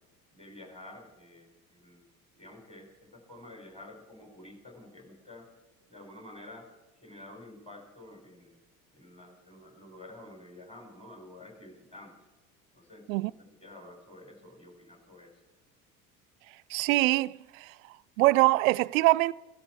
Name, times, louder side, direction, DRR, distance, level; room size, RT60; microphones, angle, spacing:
voice 1, 0.3-2.1 2.3-5.5 5.9-6.7 7.0-8.6 8.9-12.2 12.7-15.3, left 1 dB, 15° left, 4.9 m, -50 dB
voice 2, 16.7-17.7 18.2-19.3, right 19 dB, 70° right, 0.5 m, -23 dB
18.0 x 12.5 x 4.7 m
hypercardioid pair, 70°, 42 cm